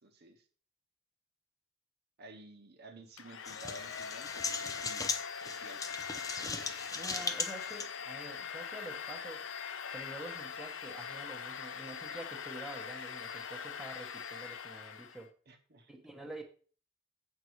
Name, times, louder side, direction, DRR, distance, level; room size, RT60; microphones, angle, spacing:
voice 1, 0.0-0.4 2.2-5.8 6.1-6.5 15.5-16.0, right 2 dB, 50° right, 6 dB, 0.9 m, -54 dB
Domestic sounds home sounds, 3.2-15.3, left 7 dB, 65° left, 0.6 m, -42 dB
sound 1, 3.5-7.9, left 4 dB, 15° left, 0.6 m, -38 dB
voice 2, 6.9-9.5 9.9-15.3 15.9-16.4, right 1 dB, ahead, 1 dB, 1.1 m, -47 dB
7.8 x 5.5 x 4.6 m, 0.42 s
head